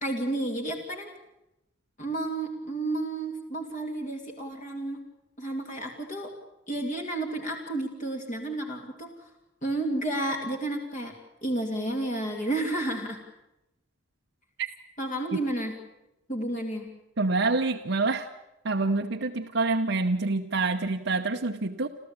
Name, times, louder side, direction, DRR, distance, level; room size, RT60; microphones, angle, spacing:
voice 1, 0.0-1.1 2.0-5.0 5.4-6.3 6.7-9.3 9.6-11.1 11.4-13.2 15.0-15.7 16.3-16.9, right 2 dB, 40° left, 1 dB, 2.7 m, -31 dB
voice 2, 17.2-18.3 18.6-21.9, right 3 dB, 65° right, 3 dB, 0.9 m, -26 dB
29.0 x 14.0 x 8.8 m, 0.91 s
head